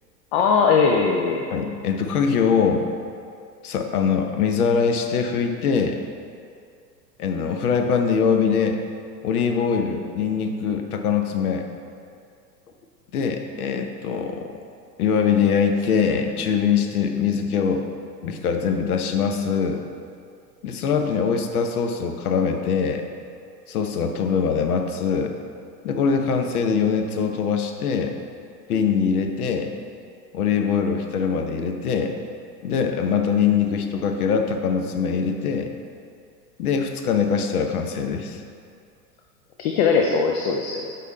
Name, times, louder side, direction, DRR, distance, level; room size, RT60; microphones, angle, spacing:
voice 1, 0.3-1.4 39.6-40.9, left 5 dB, 40° left, 2 dB, 0.5 m, -20 dB
voice 2, 1.5-2.9 3.6-6.0 7.2-8.8 9.2-11.7 13.1-14.5 15.0-17.8 18.2-19.8 20.6-23.0 23.7-25.4 25.8-28.1 28.7-29.7 30.3-32.1 32.6-35.7 36.6-38.4, left 6 dB, 60° left, 5 dB, 0.8 m, -22 dB
8.1 x 4.4 x 4.1 m, 2.3 s
figure-of-eight pair, 90°, 50 cm